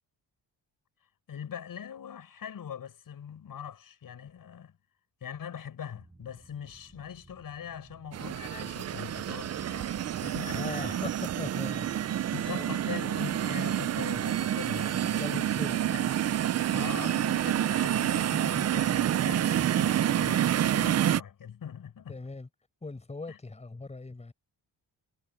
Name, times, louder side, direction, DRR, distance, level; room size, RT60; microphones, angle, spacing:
voice 1, 1.3-4.8 5.2-11.0 12.3-15.5 15.9-16.1 16.7-22.2 23.3-23.4, left 8 dB, 55° left, 6.9 m, -42 dB
sound 1, 5.9-12.0, right 2 dB, 15° right, 7.7 m, -56 dB
sound 2, 8.1-21.2, right 11 dB, 40° right, 0.4 m, -28 dB
voice 2, 10.5-12.0 12.5-12.7 15.2-16.0 22.1-22.5 22.8-24.3, left 3 dB, 15° left, 5.1 m, -39 dB
wide cardioid pair, 165°, 41 cm